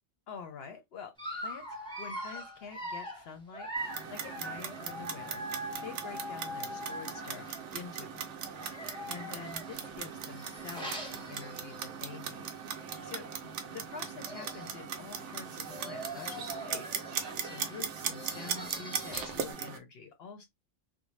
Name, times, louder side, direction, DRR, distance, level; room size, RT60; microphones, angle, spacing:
voice 1, 0.3-1.1 1.4-1.6 2.0-20.4, left 6 dB, 65° left, 0.7 m, -47 dB
Dog, 1.2-7.8 8.5-12.1 12.6-12.7 13.0-13.1 14.0-14.1 14.2-14.8 15.4-19.5, equal, 5° left, 0.6 m, -42 dB
Clock, 3.8-19.8, right 7 dB, 70° right, 0.8 m, -39 dB
2.6 x 2.0 x 3.0 m
omnidirectional pair, 1.4 m